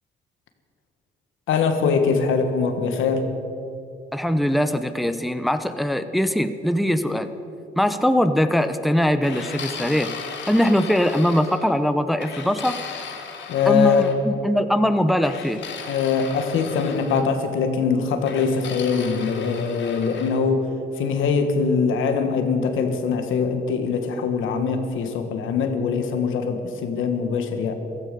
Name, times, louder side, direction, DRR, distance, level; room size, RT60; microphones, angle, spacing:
voice 1, 1.5-3.3 13.5-14.1 15.9-20.7 21.0-27.7, left 5 dB, 85° left, 7 dB, 1.7 m, -22 dB
voice 2, 4.1-7.3 7.8-10.1 10.5-12.8 13.7-15.6, equal, ahead, 10 dB, 0.8 m, -21 dB
sound 1, 9.2-11.7 12.2-14.2 15.2-17.3 18.3-20.4, left 6 dB, 70° left, 2.0 m, -36 dB
15.0 x 13.0 x 6.9 m, 2.8 s
cardioid pair, 90°, 20 cm